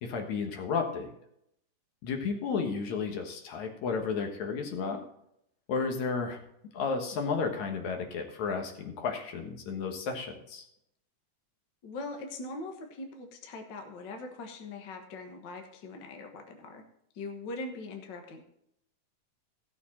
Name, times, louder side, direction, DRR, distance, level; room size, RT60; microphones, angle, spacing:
voice 1, 0.0-1.1 2.0-5.0 5.7-6.4 6.7-10.6, left 5 dB, 65° left, 4 dB, 2.6 m, -32 dB
voice 2, 11.8-16.8 17.1-18.4, left 2 dB, 50° left, 4 dB, 1.5 m, -41 dB
15.5 x 6.8 x 4.3 m, 0.76 s
omnidirectional pair, 3.6 m